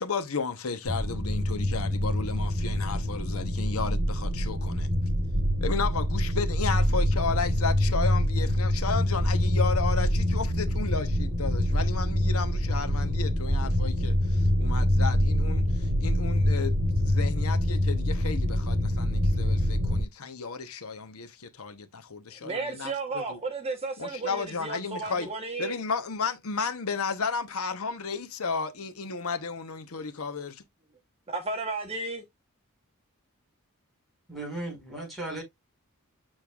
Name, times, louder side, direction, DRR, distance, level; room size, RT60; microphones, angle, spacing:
voice 1, 0.0-4.9 5.6-23.4 24.0-25.3 25.6-30.6, left 5 dB, 80° left, 1.0 m, -33 dB
sound 1, 0.9-20.0, left 1 dB, 55° right, 5.2 m, -25 dB
voice 2, 22.4-25.8 31.3-32.2, right 3 dB, 30° right, 1.1 m, -33 dB
voice 3, 34.3-35.4, right 2 dB, ahead, 5.4 m, -36 dB
8.8 x 6.4 x 2.4 m
head